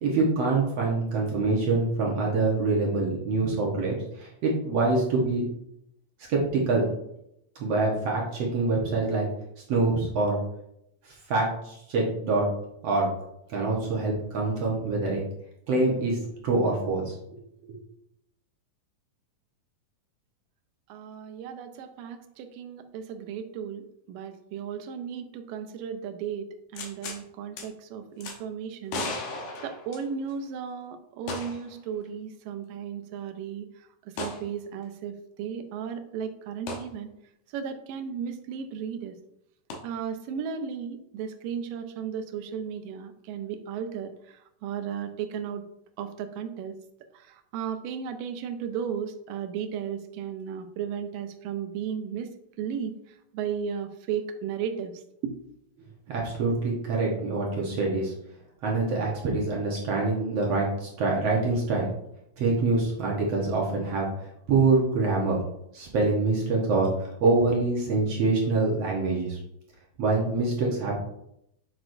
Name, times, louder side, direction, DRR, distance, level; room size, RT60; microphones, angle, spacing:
voice 1, 0.0-5.5 6.3-6.8 7.6-9.2 9.7-10.4 11.3-12.5 12.8-13.1 13.5-15.2 15.7-16.2 16.4-17.4 56.1-58.1 58.6-61.9 62.4-64.1 64.5-65.4 65.7-69.4 70.0-71.0, right 3 dB, 60° right, -2 dB, 1.9 m, -25 dB
voice 2, 20.9-26.4 26.7-29.4 29.6-33.7 34.2-35.1 35.4-37.1 37.5-39.1 39.8-45.6 46.0-46.7 47.5-52.3 52.6-52.9 53.3-54.9 55.2-55.3, right 7 dB, 85° right, 8 dB, 2.4 m, -35 dB
sound 1, 26.7-27.2 27.6-27.7 28.2-28.4 28.9-30.4 31.3-31.7 32.0-32.1 34.2-34.4 36.7-36.9 39.7-39.8, left 3 dB, 70° left, 2.3 m, -35 dB
7.7 x 6.1 x 2.6 m, 0.78 s
omnidirectional pair, 3.8 m